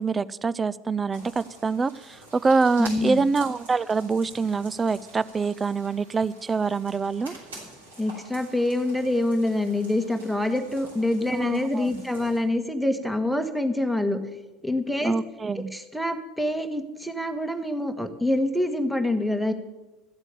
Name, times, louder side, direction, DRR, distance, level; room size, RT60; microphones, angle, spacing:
voice 1, 0.0-7.3 11.3-12.0 15.0-15.7, right 4 dB, 20° right, 18 dB, 0.4 m, -25 dB
sound 1, 1.1-12.4, right 2 dB, 80° right, 5.4 m, -47 dB
voice 2, 2.8-3.2 8.0-14.2 14.6-15.1 15.5-19.5, left 1 dB, ahead, 7 dB, 1.5 m, -26 dB
14.0 x 8.1 x 6.9 m, 1.1 s
figure-of-eight pair, 75°, 0 cm